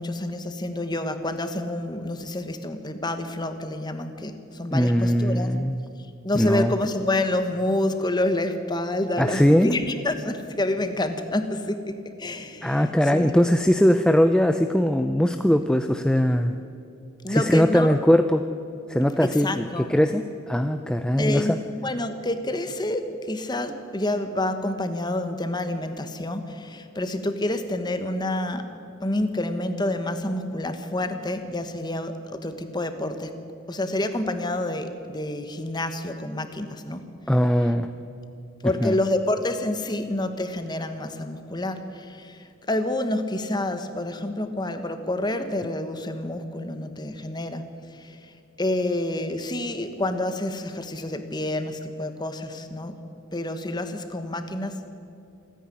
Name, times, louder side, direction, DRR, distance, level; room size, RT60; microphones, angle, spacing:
voice 1, 0.0-5.6 6.2-13.3 17.2-18.0 19.2-19.9 21.2-28.7 29.0-33.3 33.7-37.0 38.6-53.0 53.3-55.0, left 1 dB, 20° left, 8 dB, 1.2 m, -28 dB
voice 2, 4.7-5.8 6.3-6.7 9.2-9.7 12.6-16.6 17.3-18.4 18.9-21.6 37.3-37.9 38.8-39.0, equal, 5° left, 8 dB, 0.5 m, -20 dB
26.5 x 10.0 x 9.8 m, 2.7 s
head